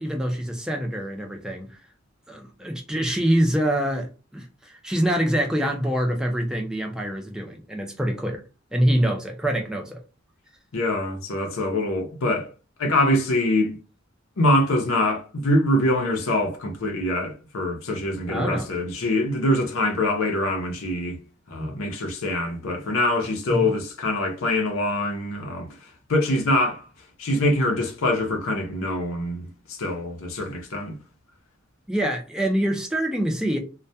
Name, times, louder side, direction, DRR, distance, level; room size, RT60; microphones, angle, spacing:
voice 1, 0.0-1.8 2.3-8.4 8.7-10.0 18.3-18.7 21.6-21.7 23.5-23.7 31.9-33.6, right 1 dB, 5° right, 0.4 m, -25 dB
voice 2, 10.7-12.5 12.8-13.8 14.4-21.2 21.5-25.7 26.1-26.8 27.2-30.9, left 1 dB, 80° left, 0.6 m, -24 dB
2.2 x 2.1 x 2.6 m
head